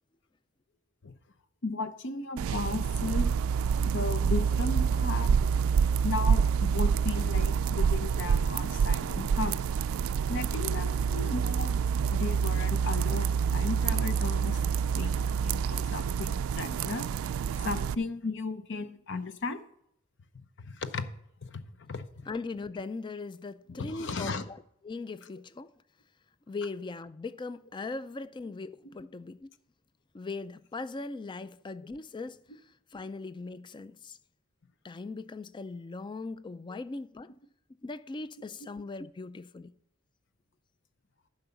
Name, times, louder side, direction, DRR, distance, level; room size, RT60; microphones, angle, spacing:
voice 1, 1.6-3.3 3.8-5.4 6.0-9.6 10.3-11.8 12.1-14.6 14.9-17.1 17.6-19.6 20.6-21.0 21.4-22.3 23.7-24.4 36.7-36.8, left 3 dB, 60° left, 0.8 m, -35 dB
sound 1, 2.4-18.0, right 6 dB, 80° right, 0.3 m, -27 dB
voice 2, 22.3-25.7 26.5-29.5 30.1-32.4 32.9-34.2 34.8-37.3 37.8-39.7, left 3 dB, 20° left, 0.4 m, -39 dB
11.0 x 5.5 x 7.0 m
head